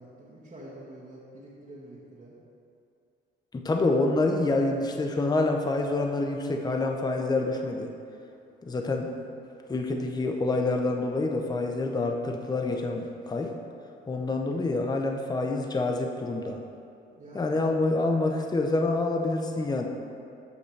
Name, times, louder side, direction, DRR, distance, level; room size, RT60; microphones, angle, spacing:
voice 1, 0.0-2.4 17.2-17.6, right 1 dB, 40° right, -10 dB, 1.9 m, -46 dB
voice 2, 3.5-7.9 8.6-9.1 9.7-13.5 14.1-16.6 17.3-19.9, left 2 dB, 20° left, 3 dB, 0.7 m, -27 dB
13.5 x 5.5 x 3.3 m, 2.6 s
cardioid pair, 90°, 20 cm